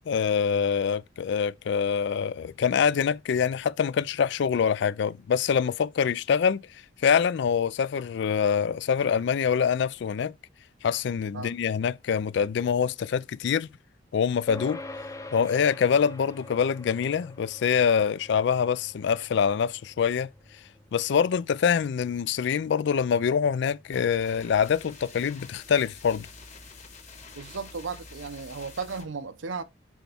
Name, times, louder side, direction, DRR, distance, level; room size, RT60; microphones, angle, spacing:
voice 1, 0.1-6.6 7.0-10.3 10.8-13.7 14.1-14.8 15.3-20.3 20.9-26.3, left 7 dB, 65° left, 0.3 m, -25 dB
sound 1, 14.5-24.2, left 2 dB, 15° left, 0.6 m, -45 dB
sound 2, 23.9-29.1, left 4 dB, 40° left, 1.7 m, -47 dB
voice 2, 27.3-29.6, right 5 dB, 85° right, 0.7 m, -35 dB
6.1 x 4.5 x 3.5 m
head